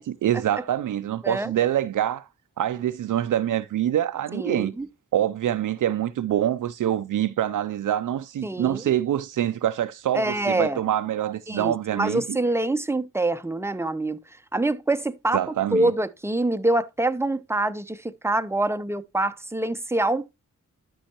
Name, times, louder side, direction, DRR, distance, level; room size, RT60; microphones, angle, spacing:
voice 1, 0.0-2.2 2.6-4.7 5.1-12.4 15.3-15.9, right 11 dB, 80° right, 0.5 m, -25 dB
voice 2, 4.3-4.9 8.4-8.8 10.1-10.8 11.5-14.2 14.5-20.3, right 2 dB, 10° right, 0.6 m, -25 dB
11.5 x 5.5 x 2.9 m
cardioid pair, 60°, 31 cm